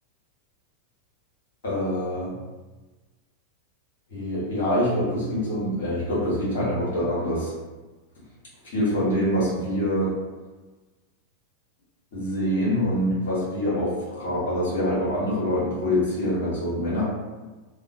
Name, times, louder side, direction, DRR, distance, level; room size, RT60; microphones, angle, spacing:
voice 1, 1.6-2.3 4.1-7.5 8.7-10.1 12.1-17.0, equal, 60° left, -7 dB, 1.2 m, -25 dB
2.8 x 2.3 x 2.7 m, 1.2 s
figure-of-eight pair, 90°, 0 cm